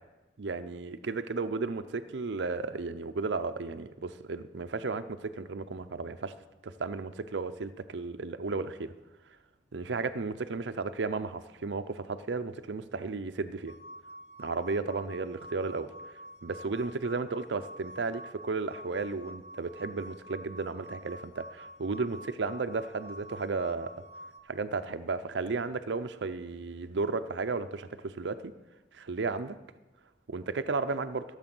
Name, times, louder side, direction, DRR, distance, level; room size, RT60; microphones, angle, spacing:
voice 1, 0.4-6.3 6.6-8.9 9.7-13.7 14.4-15.9 16.4-23.9 24.5-28.5 28.9-29.6 30.3-31.2, right 4 dB, 70° right, 10 dB, 0.6 m, -34 dB
sound 1, 13.7-24.4, equal, 65° left, 0.9 m, -48 dB
14.5 x 7.3 x 6.1 m, 1.1 s
head